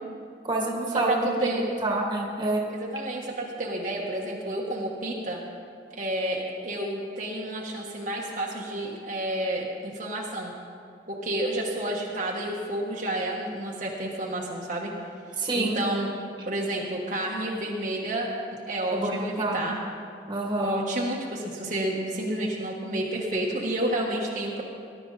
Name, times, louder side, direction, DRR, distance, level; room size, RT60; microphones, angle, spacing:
voice 1, 0.4-2.7 15.4-15.8 18.9-19.6 20.3-20.8, right 2 dB, 25° right, -1 dB, 1.8 m, -27 dB
voice 2, 1.1-1.6 2.7-5.4 6.0-10.5 11.1-14.9 15.5-16.1 16.5-18.3 18.7-19.7 20.6-24.6, right 1 dB, 45° right, -3 dB, 1.5 m, -30 dB
19.5 x 11.5 x 4.1 m, 2.3 s
head